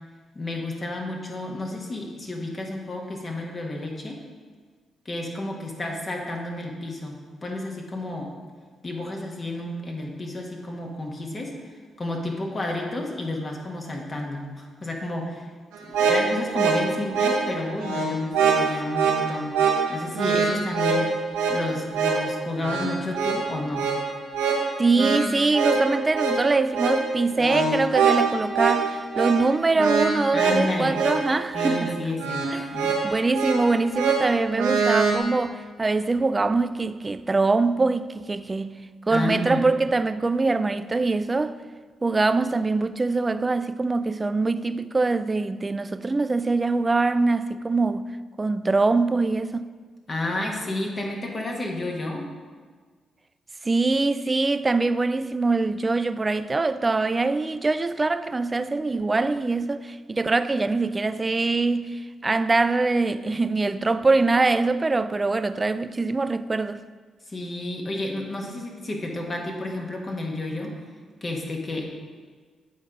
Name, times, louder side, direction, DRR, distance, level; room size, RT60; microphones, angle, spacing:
voice 1, 0.3-4.2 5.0-8.3 8.8-15.5 15.9-19.6 19.9-21.1 21.5-23.9 30.3-31.0 31.5-33.0 39.1-39.6 50.1-52.3 67.3-70.7 71.2-71.8, left 2 dB, 40° left, 1.5 m, -31 dB
Happy Pirate Accordion, 15.7-35.2, right 5 dB, 90° right, 0.9 m, -24 dB
voice 2, 24.8-32.0 32.5-32.7 33.0-38.7 39.1-41.6 42.0-48.1 48.4-49.7 53.6-66.8, right 3 dB, 30° right, 0.3 m, -23 dB
8.3 x 4.0 x 5.0 m
hypercardioid pair, 45°, 0 cm